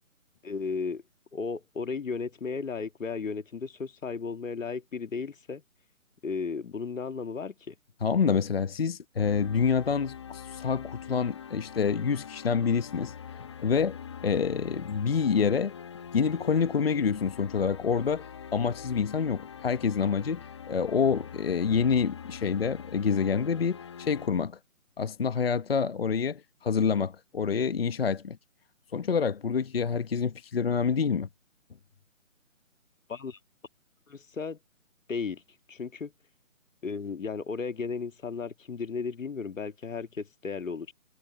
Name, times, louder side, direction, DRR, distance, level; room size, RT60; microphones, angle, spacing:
voice 1, 0.4-1.0 1.3-5.6 6.2-7.8 33.1-33.4 34.1-34.6 35.1-35.4 35.7-36.1 36.8-40.9, left 5 dB, 65° left, 1.7 m, -34 dB
voice 2, 8.0-15.7 16.1-24.6 25.0-28.4 28.9-31.3, left 6 dB, 45° left, 1.0 m, -27 dB
sound 1, 9.1-24.3, left 7 dB, 20° left, 1.1 m, -44 dB
hypercardioid pair, 165°, 41 cm